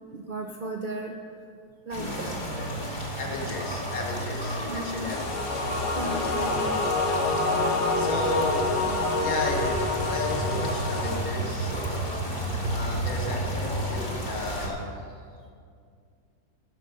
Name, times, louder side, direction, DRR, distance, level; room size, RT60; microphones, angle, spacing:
voice 1, 0.1-1.1 1.9-2.3 2.8-2.9 4.7-5.2 5.9-6.9 9.1-9.2 10.0-10.2 10.8-10.9 11.9-12.6 13.9-14.0, right 2 dB, 70° right, 2 dB, 0.5 m, -36 dB
sound 1, 1.9-14.7, equal, 30° left, 1.5 m, -32 dB
voice 2, 3.2-5.2 5.9-6.3 7.9-8.7 9.2-11.7 12.7-14.9, left 2 dB, 60° left, 0 dB, 1.6 m, -34 dB
sound 2, 5.1-11.2, left 3 dB, 80° left, 1.6 m, -27 dB
11.5 x 5.4 x 6.5 m, 2.2 s
omnidirectional pair, 1.8 m